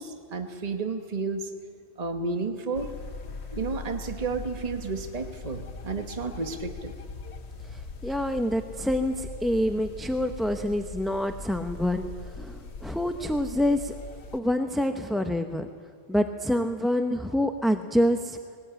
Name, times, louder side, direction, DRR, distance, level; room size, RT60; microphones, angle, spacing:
voice 1, 0.0-1.5 2.0-2.9 3.5-6.9 10.5-10.6, right 4 dB, 40° right, 5 dB, 1.3 m, -32 dB
sound 1, 2.7-14.4, left 3 dB, 90° left, 1.4 m, -41 dB
voice 2, 7.7-13.9 14.3-15.7 16.1-18.4, equal, ahead, 6 dB, 0.6 m, -27 dB
20.0 x 18.5 x 8.9 m, 2.1 s
omnidirectional pair, 1.1 m